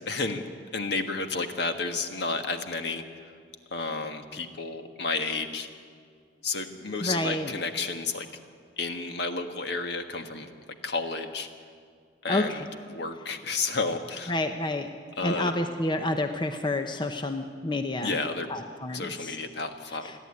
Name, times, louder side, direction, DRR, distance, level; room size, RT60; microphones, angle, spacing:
voice 1, 0.1-0.5 0.7-3.0 3.7-5.7 6.4-8.3 8.8-10.5 10.8-11.5 12.2-14.3 15.2-15.5 18.0-18.5 18.9-20.1, left 3 dB, 65° left, 6 dB, 1.6 m, -31 dB
voice 2, 7.0-7.5 12.3-12.6 14.3-14.9 15.2-18.2 18.5-19.4 20.0-20.1, left 2 dB, 25° left, 6 dB, 0.9 m, -29 dB
29.0 x 11.0 x 9.7 m, 2.1 s
head